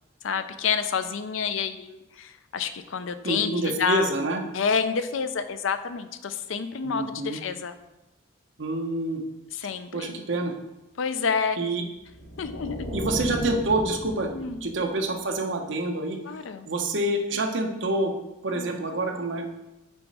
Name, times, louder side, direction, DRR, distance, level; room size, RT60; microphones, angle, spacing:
voice 1, 0.2-4.1 4.5-7.7 9.5-10.2 11.0-11.6 12.4-12.9 14.3-14.6 16.3-16.7 18.5-18.8, left 6 dB, 90° left, 11 dB, 0.5 m, -29 dB
voice 2, 3.2-4.4 6.8-7.4 8.6-9.2 9.9-10.5 11.6-11.8 12.9-14.3 14.6-16.2 16.7-18.1 18.4-19.4, right 2 dB, 75° right, 3 dB, 0.9 m, -27 dB
sound 1, 12.0-15.0, equal, 55° left, 1.2 m, -36 dB
6.9 x 4.0 x 4.7 m, 0.98 s
head